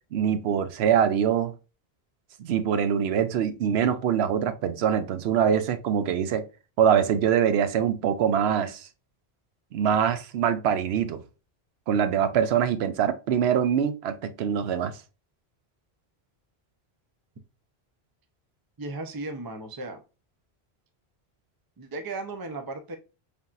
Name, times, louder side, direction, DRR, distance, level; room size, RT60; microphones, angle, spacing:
voice 1, 0.1-1.5 2.4-6.5 6.8-8.9 9.7-11.2 11.9-14.9, right 8 dB, 80° right, 0.8 m, -24 dB
voice 2, 18.8-20.0 21.8-23.0, right 2 dB, 30° right, 0.4 m, -35 dB
4.2 x 3.5 x 2.3 m
omnidirectional pair, 1.1 m